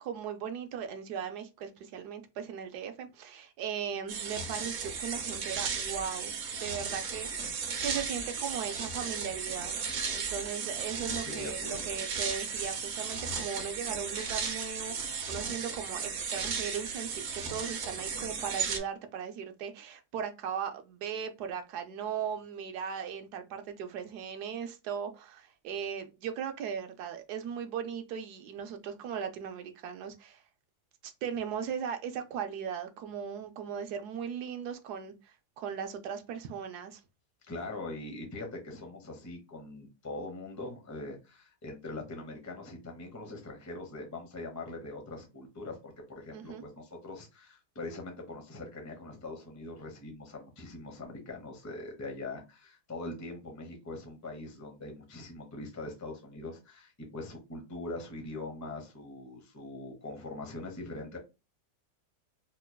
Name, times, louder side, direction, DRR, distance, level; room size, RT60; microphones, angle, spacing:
voice 1, 0.0-9.8 10.1-30.4 31.0-37.0 46.3-46.6, right 7 dB, 75° right, 1.1 m, -38 dB
sound 1, 4.1-18.8, right 5 dB, 55° right, 0.8 m, -35 dB
voice 2, 11.2-11.8 37.5-61.2, left 2 dB, 15° left, 0.6 m, -42 dB
4.3 x 3.0 x 2.2 m
omnidirectional pair, 1.7 m